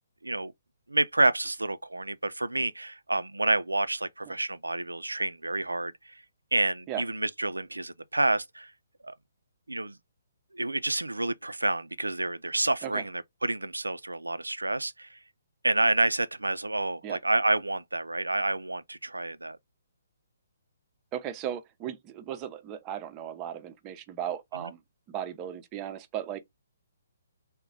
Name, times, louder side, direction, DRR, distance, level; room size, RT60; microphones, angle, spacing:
voice 1, 0.9-6.2 6.5-8.7 9.0-9.1 9.7-10.0 10.5-15.2 15.6-19.6 24.6-24.7, right 2 dB, 80° right, 0.4 m, -29 dB
voice 2, 21.1-24.8 25.1-26.4, right 10 dB, 20° right, 0.5 m, -36 dB
3.8 x 2.2 x 3.5 m
figure-of-eight pair, 130°, 0 cm